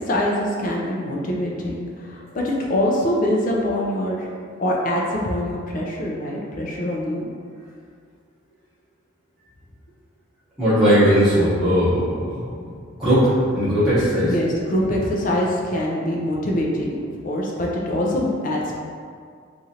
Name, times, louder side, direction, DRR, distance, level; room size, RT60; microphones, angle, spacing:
voice 1, 0.1-4.3 4.6-7.3 14.2-18.8, left 1 dB, 40° left, -2 dB, 0.4 m, -24 dB
voice 2, 10.6-12.5 13.0-13.3 13.5-14.3, equal, ahead, -16 dB, 0.9 m, -18 dB
3.0 x 2.5 x 2.7 m, 2.1 s
head